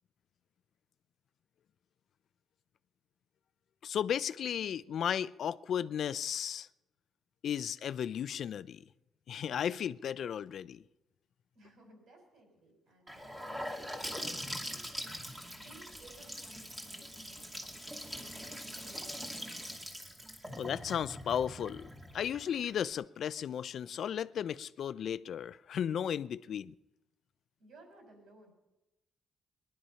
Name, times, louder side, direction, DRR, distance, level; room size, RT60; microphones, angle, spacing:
voice 1, 3.8-6.7 7.4-8.8 9.3-10.8 20.6-26.7, left 9 dB, 65° left, 0.4 m, -35 dB
voice 2, 11.5-19.5 27.6-28.5, right 1 dB, 70° right, 5.4 m, -60 dB
Gurgling / Sink (filling or washing) / Bathtub (filling or washing), 13.1-22.9, equal, 15° right, 2.5 m, -43 dB
19.5 x 11.0 x 5.7 m
cardioid pair, 90°, 0 cm